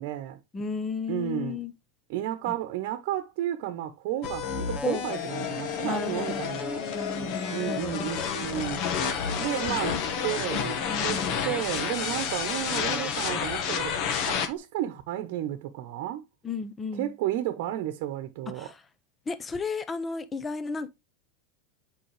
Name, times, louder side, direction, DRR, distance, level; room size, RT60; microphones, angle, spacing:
voice 1, 0.0-0.4 1.1-1.6 2.1-6.8 7.5-8.8 9.4-10.0 10.2-16.2 16.9-18.7, right 12 dB, 65° right, 1.0 m, -32 dB
voice 2, 0.5-1.7 4.8-5.0 5.8-6.5 6.9-8.1 9.7-9.8 10.9-11.4 16.4-17.1 18.6-18.8 19.3-20.9, left 4 dB, 20° left, 0.9 m, -33 dB
sound 1, 4.2-14.5, left 7 dB, 55° left, 1.4 m, -30 dB
7.7 x 5.4 x 3.2 m
supercardioid pair, 120°, 0 cm